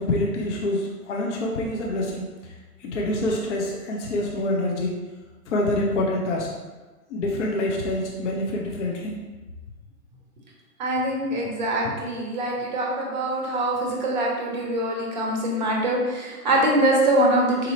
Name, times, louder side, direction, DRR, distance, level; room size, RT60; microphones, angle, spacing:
voice 1, 0.0-2.3 2.8-4.9 5.5-6.5 7.1-9.2, left 1 dB, 50° left, -1 dB, 0.6 m, -26 dB
voice 2, 10.8-17.7, right 1 dB, 30° right, -2 dB, 0.6 m, -23 dB
4.2 x 2.7 x 2.6 m, 1.3 s
figure-of-eight pair, 125°, 48 cm